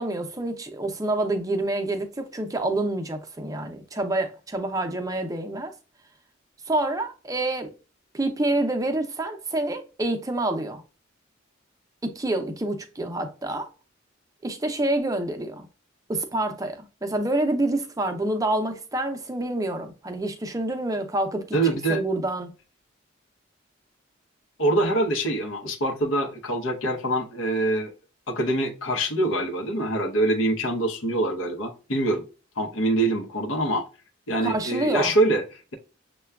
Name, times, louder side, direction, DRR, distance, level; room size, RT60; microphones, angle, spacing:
voice 1, 0.0-5.7 6.7-7.7 8.1-10.8 12.0-13.7 14.4-15.7 16.1-22.5 34.4-35.1, right 2 dB, 15° right, 0.5 m, -27 dB
voice 2, 21.5-22.0 24.6-27.9 28.3-32.2 32.6-33.8 34.3-35.4, right 1 dB, 85° left, 0.8 m, -24 dB
6.6 x 2.2 x 2.3 m
head